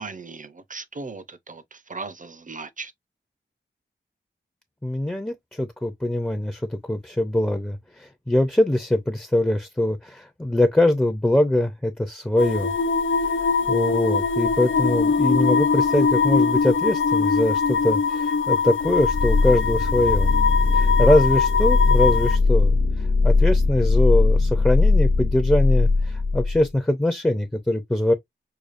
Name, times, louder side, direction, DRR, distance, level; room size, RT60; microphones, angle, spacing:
voice 1, 0.0-2.9, right 4 dB, 40° right, 0.6 m, -37 dB
voice 2, 4.8-12.7 13.7-20.3 20.7-22.8 23.2-28.1, left 1 dB, 10° left, 0.5 m, -23 dB
sound 1, 12.4-22.4, left 5 dB, 90° left, 0.5 m, -22 dB
sound 2, 18.8-26.7, left 3 dB, 70° left, 0.9 m, -20 dB
4.9 x 2.4 x 2.4 m
wide cardioid pair, 70°, 20 cm